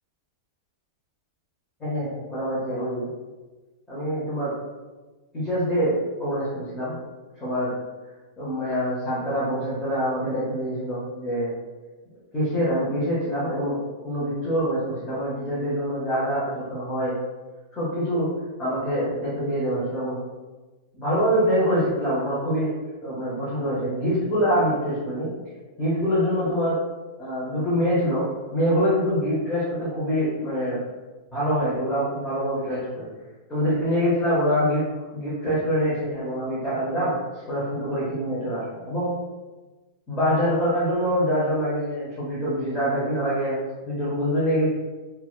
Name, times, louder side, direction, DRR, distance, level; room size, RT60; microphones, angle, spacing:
voice 1, 1.8-3.1 3.9-4.6 5.3-6.9 7.4-7.7 8.4-11.5 12.3-17.1 17.7-18.3 18.6-20.2 20.9-22.7 23.0-25.3 25.8-26.8 27.2-30.8 31.3-33.0 33.5-34.8 35.1-39.1 40.1-44.7, equal, 15° left, -11 dB, 0.7 m, -25 dB
2.7 x 2.1 x 2.2 m, 1.2 s
supercardioid pair, 160°, 2 cm